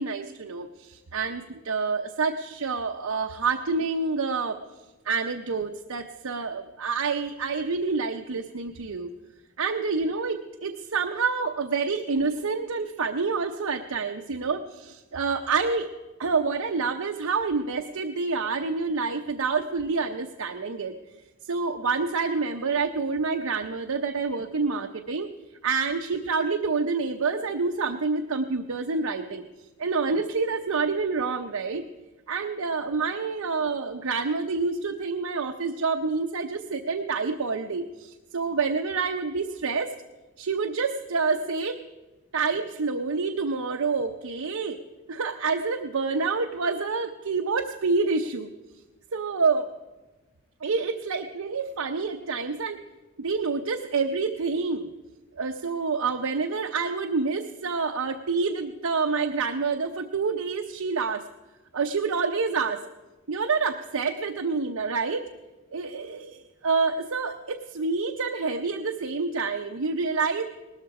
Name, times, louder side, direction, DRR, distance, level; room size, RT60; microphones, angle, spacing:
voice 1, 0.0-4.6 5.0-9.1 9.6-15.9 16.2-20.9 21.5-25.3 25.6-29.4 29.8-31.8 32.3-39.9 40.4-41.8 42.3-44.8 45.1-48.5 49.1-49.7 50.6-52.8 53.2-54.9 55.4-61.2 61.7-62.8 63.3-65.2 65.7-70.4, right 4 dB, 85° right, 4 dB, 0.7 m, -27 dB
19.0 x 13.0 x 4.8 m, 1.2 s
head